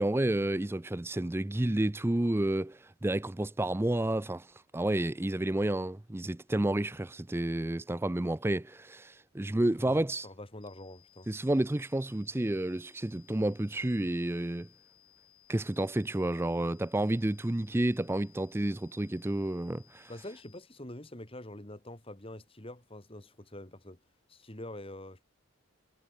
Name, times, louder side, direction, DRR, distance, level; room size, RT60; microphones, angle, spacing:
voice 1, 0.0-10.3 11.3-14.7 15.5-20.1, right 1 dB, 10° right, 0.4 m, -30 dB
voice 2, 9.8-11.3 20.1-24.0 24.3-25.2, left 1 dB, 25° left, 2.4 m, -45 dB
sound 1, 10.6-20.6, left 12 dB, 90° left, 7.2 m, -63 dB
head